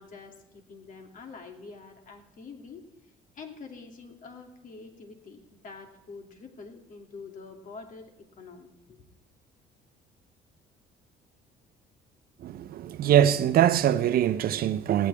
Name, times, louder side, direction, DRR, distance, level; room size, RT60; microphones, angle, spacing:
voice 1, 0.0-2.8 3.3-9.0, left 4 dB, 50° left, 2.7 m, -46 dB
voice 2, 12.4-15.1, right 10 dB, 65° right, 0.8 m, -23 dB
18.0 x 17.0 x 3.5 m
cardioid pair, 110°, 17 cm